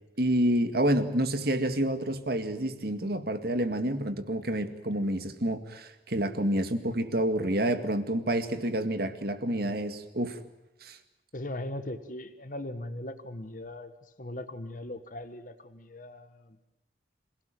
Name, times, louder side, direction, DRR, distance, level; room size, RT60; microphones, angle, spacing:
voice 1, 0.2-10.4 10.8-11.0, right 1 dB, 60° right, 9 dB, 2.1 m, -28 dB
voice 2, 11.3-16.6, left 1 dB, 45° left, 9 dB, 1.5 m, -39 dB
27.0 x 17.5 x 9.1 m, 0.95 s
head